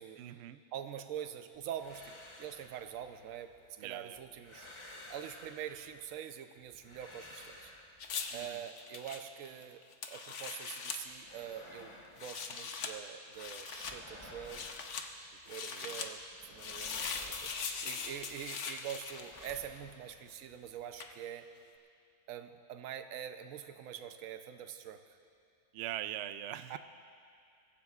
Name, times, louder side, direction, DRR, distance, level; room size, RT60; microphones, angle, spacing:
voice 1, 0.2-0.6 3.8-4.2 8.3-8.6 15.7-16.1 25.7-26.8, right 12 dB, 90° right, 12 dB, 0.5 m, -42 dB
voice 2, 0.7-3.5 3.8-4.7 5.1-7.7 8.3-9.8 10.1-14.7 15.5-21.5 22.3-25.2 26.7-26.8, right 9 dB, 65° right, 8 dB, 1.0 m, -45 dB
sound 1, 1.5-3.7 4.1-6.2 6.6-8.5 10.9-13.1 13.3-15.6 15.9-18.5 18.7-21.1, left 1 dB, 20° left, 1.0 m, -55 dB
sound 2, 8.0-11.0 12.0-12.9 13.3-14.0 14.4-15.1 15.5-16.1 16.6-19.8 21.0-21.2, left 5 dB, 55° left, 1.0 m, -41 dB
24.0 x 15.0 x 2.4 m, 2.3 s
omnidirectional pair, 1.7 m